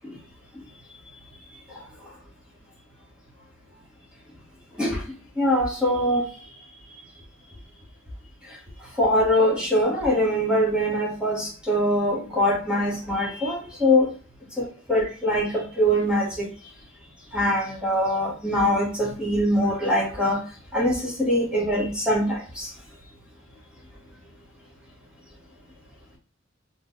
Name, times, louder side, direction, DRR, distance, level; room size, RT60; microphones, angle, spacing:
voice 1, 5.4-6.2 9.0-14.1 14.6-14.7 14.9-16.5 17.3-20.4 20.7-22.7, equal, 5° right, -4 dB, 1.5 m, -23 dB
4.6 x 2.6 x 2.4 m, 0.41 s
head